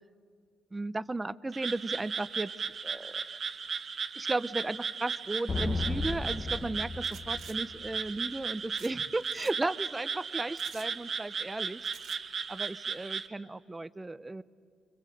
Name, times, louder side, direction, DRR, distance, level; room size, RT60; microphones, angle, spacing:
voice 1, 0.7-3.1 4.2-11.9 12.5-14.4, right 2 dB, 20° right, 15 dB, 0.7 m, -35 dB
Frog, 1.5-13.3, right 5 dB, 50° right, 1.1 m, -36 dB
sound 1, 5.5-8.2, left 3 dB, 30° left, 1.0 m, -34 dB
sound 2, 7.0-7.6 8.8-8.9 9.2-9.5 10.6-10.9 11.8-12.2, right 7 dB, 65° right, 2.0 m, -50 dB
27.5 x 25.0 x 7.8 m, 2.2 s
cardioid pair, 90°, 0 cm